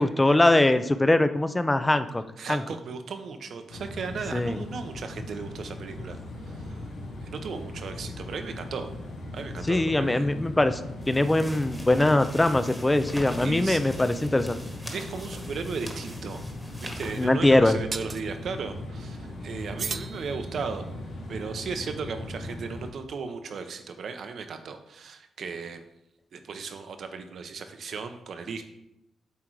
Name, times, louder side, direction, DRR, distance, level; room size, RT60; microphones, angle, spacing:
voice 1, 0.0-2.2 2.5-2.6 4.3-4.6 9.7-10.8 11.1-14.6 17.2-17.8, left 1 dB, 15° left, 10 dB, 0.5 m, -22 dB
voice 2, 2.4-6.8 7.2-8.9 9.3-10.3 13.4-13.8 14.9-16.5 16.8-20.8 21.3-25.8 26.3-28.6, right 5 dB, 65° right, 7 dB, 0.8 m, -36 dB
sound 1, 3.7-22.9, left 1 dB, 80° left, 1.4 m, -39 dB
sound 2, 11.0-17.3, equal, ahead, 1.3 m, -43 dB
sound 3, 17.9-18.3 19.8-20.9, right 5 dB, 45° right, 0.4 m, -36 dB
8.3 x 3.7 x 4.6 m, 0.84 s
cardioid pair, 90°, 0 cm